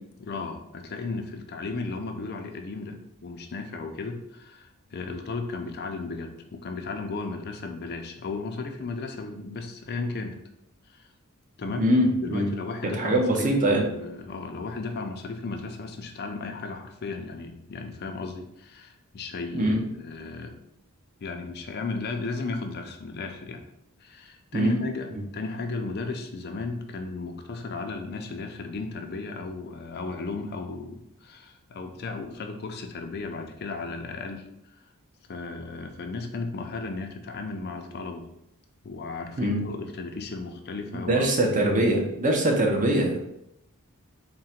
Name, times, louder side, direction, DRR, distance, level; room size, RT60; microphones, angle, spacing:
voice 1, 0.2-10.4 10.9-11.1 11.6-11.9 12.2-20.5 21.2-23.6 24.0-34.4 35.3-38.3 38.8-41.7, left 3 dB, 45° left, 4 dB, 0.4 m, -35 dB
voice 2, 11.8-12.5 12.9-13.8 19.5-19.8 24.5-24.8 25.1-25.2 39.4-39.6 40.9-43.2, right 1 dB, 35° right, 1 dB, 0.6 m, -23 dB
3.7 x 2.2 x 4.2 m, 0.79 s
head